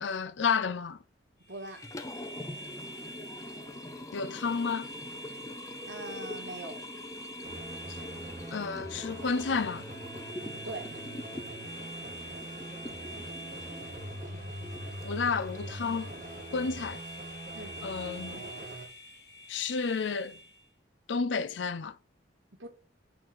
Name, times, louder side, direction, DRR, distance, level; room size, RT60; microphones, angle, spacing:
voice 1, 0.0-1.0 4.1-4.9 7.9-8.0 8.5-9.9 15.0-16.1 16.5-17.0 17.8-18.5 19.5-20.4 21.1-22.0, left 5 dB, 75° left, 0.5 m, -31 dB
sound 1, 1.4-20.7, equal, 55° left, 1.6 m, -46 dB
voice 2, 1.5-1.9 5.9-6.8 10.6-10.9 17.5-17.8 22.6-22.7, right 2 dB, 80° right, 2.0 m, -41 dB
Liquid, 1.7-15.8, left 1 dB, 15° left, 0.7 m, -45 dB
sound 2, 7.4-18.9, right 1 dB, 40° right, 1.8 m, -43 dB
6.4 x 4.1 x 6.1 m
head